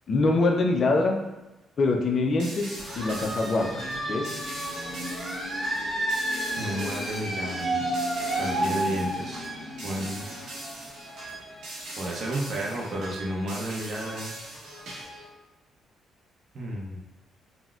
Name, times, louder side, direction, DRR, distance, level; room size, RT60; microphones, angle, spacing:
voice 1, 0.1-1.2 1.8-3.8 4.1-4.4, left 3 dB, 50° left, 2 dB, 0.5 m, -24 dB
sound 1, 2.4-15.3, right 2 dB, 80° right, 0.9 m, -41 dB
sound 2, 2.8-12.3, right 1 dB, 15° right, 1.0 m, -32 dB
voice 2, 6.6-7.9 8.4-9.5 9.8-10.3 12.0-14.4 16.5-17.0, right 1 dB, 55° right, -2 dB, 0.6 m, -32 dB
4.0 x 2.1 x 2.4 m, 1.0 s
cardioid pair, 90°, 0 cm